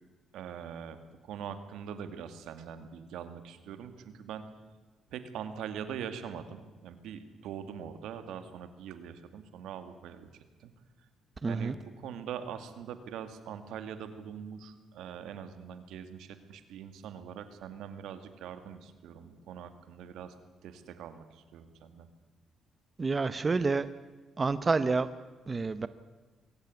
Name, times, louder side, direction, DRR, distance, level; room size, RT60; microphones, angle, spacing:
voice 1, 0.3-4.4 5.1-10.3 10.6-10.7 11.5-20.3 20.6-22.1, right 8 dB, 85° right, 10 dB, 2.2 m, -42 dB
voice 2, 11.4-11.7 23.0-23.9 24.4-25.1 25.5-25.9, right 4 dB, 30° right, 14 dB, 0.9 m, -28 dB
22.5 x 16.5 x 9.7 m, 1.3 s
cardioid pair, 90°, 0 cm